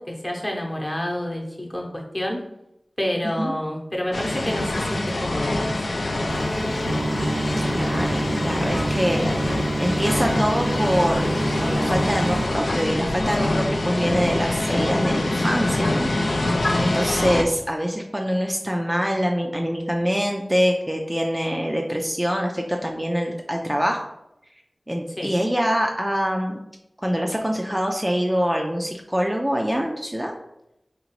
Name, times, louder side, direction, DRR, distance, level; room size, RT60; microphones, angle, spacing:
voice 1, 0.0-2.4 3.0-6.3 25.2-25.3, equal, 25° left, 0 dB, 0.8 m, -29 dB
voice 2, 3.2-3.5 7.6-16.5 16.8-24.1 24.9-26.6 27.0-30.3, equal, 10° right, 1 dB, 0.4 m, -25 dB
sound 1, 4.1-17.4, left 1 dB, 80° left, 0.4 m, -25 dB
sound 2, 6.3-12.5, right 2 dB, 90° right, 0.3 m, -27 dB
3.8 x 2.8 x 3.0 m, 0.84 s
wide cardioid pair, 65°, 0 cm